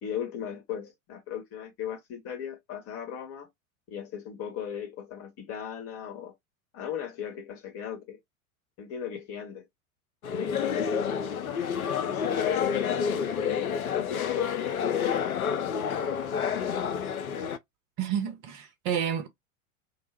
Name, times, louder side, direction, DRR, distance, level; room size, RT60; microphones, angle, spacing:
voice 1, 0.0-3.5 3.9-6.3 6.7-8.2 8.8-9.7 10.4-11.2 12.0-15.6, left 9 dB, 35° left, 1.0 m, -37 dB
sound 1, 10.2-17.6, left 7 dB, 80° left, 0.5 m, -29 dB
voice 2, 18.0-19.3, right 8 dB, 40° right, 0.7 m, -30 dB
2.2 x 2.0 x 3.1 m
figure-of-eight pair, 85°, 42 cm